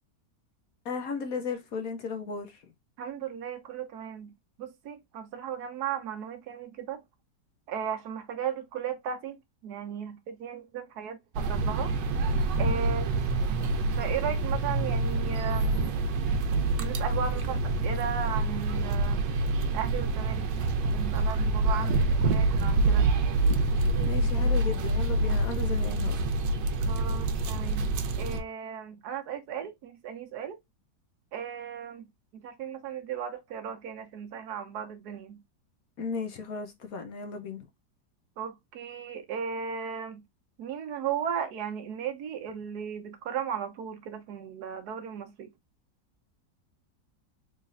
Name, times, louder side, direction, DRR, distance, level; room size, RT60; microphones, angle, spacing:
voice 1, 0.8-2.6 24.0-26.2 36.0-37.6, left 5 dB, 60° left, 1.1 m, -35 dB
voice 2, 3.0-4.3 4.6-7.0 7.7-11.9 12.6-13.1 14.0-15.9 16.8-19.3 19.7-20.5 20.9-23.1 26.9-30.6 31.3-32.1 32.3-35.4 38.4-40.2 40.6-45.5, right 8 dB, 70° right, 1.2 m, -36 dB
sound 1, 11.3-28.4, right 2 dB, 85° right, 1.3 m, -26 dB
3.9 x 3.3 x 2.4 m
omnidirectional pair, 1.9 m